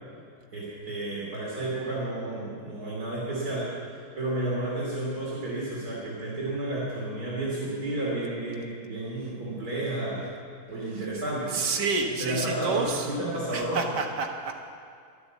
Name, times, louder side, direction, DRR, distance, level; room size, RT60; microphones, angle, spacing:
voice 1, 0.5-3.7 4.2-10.3 10.7-11.6 12.2-13.8, right 1 dB, 65° right, -6 dB, 3.2 m, -31 dB
voice 2, 11.5-13.1 13.5-14.6, right 4 dB, 85° right, 2 dB, 1.9 m, -29 dB
11.5 x 9.4 x 8.4 m, 2.2 s
omnidirectional pair, 1.8 m